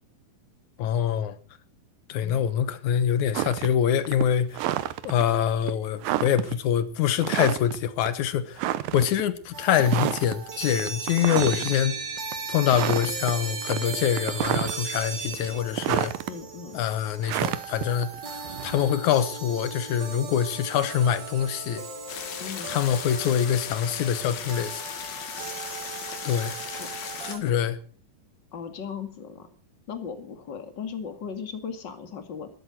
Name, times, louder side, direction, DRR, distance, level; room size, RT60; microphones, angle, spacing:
voice 1, 0.8-1.4 2.1-4.6 5.0-8.6 8.9-12.0 12.5-16.1 16.7-18.1 18.6-21.8 22.7-24.8 26.2-26.6 27.4-27.7, left 9 dB, 65° left, 2.2 m, -25 dB
sound 1, 3.3-3.7 4.1-5.2 5.7-5.8 6.0-6.5 7.2-7.8 8.1-8.2 8.6-9.2 9.8-10.4 10.8-11.7 12.2-12.3 12.7-13.3 13.6-15.0 15.3-16.3 17.2-19.0, right 14 dB, 75° right, 2.5 m, -29 dB
sound 2, 9.5-27.4, right 5 dB, 40° right, 2.0 m, -37 dB
voice 2, 16.3-16.8 22.4-22.8 26.8-26.9 27.3-27.5 28.5-29.5 29.9-32.5, left 6 dB, 35° left, 2.3 m, -37 dB
sound 3, 22.1-27.4, left 8 dB, 80° left, 3.7 m, -37 dB
14.0 x 12.5 x 7.6 m
omnidirectional pair, 4.2 m